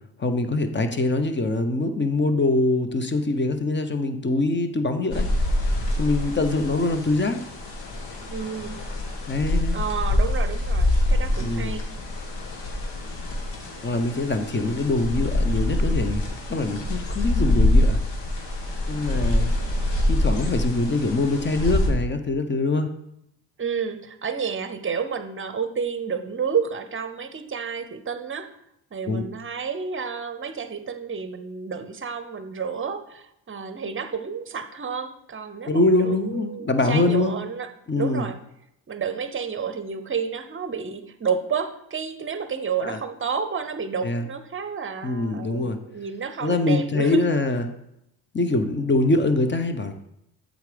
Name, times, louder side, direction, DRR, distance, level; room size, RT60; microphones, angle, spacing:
voice 1, 0.2-5.3 5.9-7.4 9.3-9.8 11.4-11.8 13.8-16.2 16.5-18.0 18.9-19.5 20.0-22.9 29.1-29.2 35.7-37.3 37.9-38.3 42.8-43.0 44.0-44.3 45.0-45.8 46.4-47.6 48.3-49.9, left 2 dB, 25° left, 8 dB, 0.9 m, -23 dB
sound 1, 5.1-21.9, left 1 dB, 65° left, 1.7 m, -25 dB
voice 2, 8.3-8.8 9.7-11.9 23.6-28.5 28.9-37.7 38.0-38.4 38.9-47.3, right 6 dB, 25° right, 11 dB, 0.8 m, -30 dB
7.9 x 3.9 x 5.2 m, 0.80 s
hypercardioid pair, 55°, 47 cm